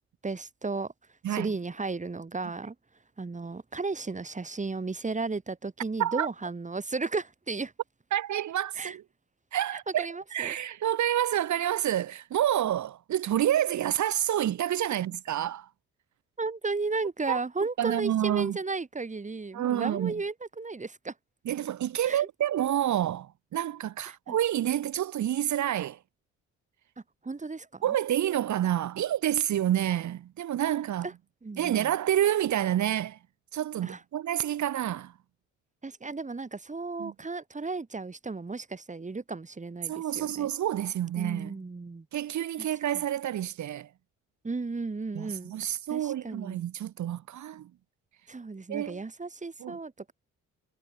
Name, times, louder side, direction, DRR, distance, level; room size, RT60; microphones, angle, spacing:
voice 1, 0.2-0.9 1.3-2.8 3.2-7.7 8.7-9.0 9.7-10.6 16.4-21.1 22.0-22.3 24.1-24.4 27.2-27.9 31.0-31.1 31.4-31.9 33.8-34.0 35.8-40.5 41.2-42.1 42.6-42.7 42.9-43.0 44.4-46.7 48.3-50.1, right 3 dB, 25° right, 6.3 m, -34 dB
voice 2, 8.1-9.0 9.5-10.1 10.3-15.7 17.3-17.4 17.8-18.6 19.5-20.1 21.5-26.0 27.8-31.1 31.6-33.2 33.5-35.1 37.0-37.1 39.9-41.6 42.1-43.9 45.1-47.7 48.7-49.0 49.6-49.8, right 11 dB, 70° right, 2.7 m, -28 dB
cardioid pair, 90°, 30 cm